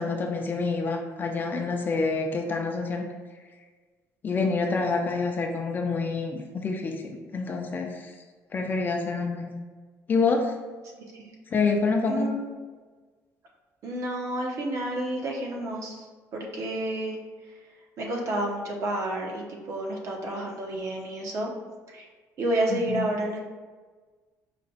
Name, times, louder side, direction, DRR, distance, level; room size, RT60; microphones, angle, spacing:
voice 1, 0.0-3.0 4.2-8.1 8.5-9.6 10.1-10.5 11.5-12.3 22.7-23.0, left 4 dB, 30° left, 3 dB, 0.5 m, -27 dB
voice 2, 12.1-12.4 13.8-16.0 16.3-17.2 18.0-21.5 21.9-22.1 22.4-23.4, right 1 dB, 50° right, 0 dB, 0.9 m, -30 dB
5.0 x 2.2 x 4.1 m, 1.4 s
cardioid pair, 130°, 6 cm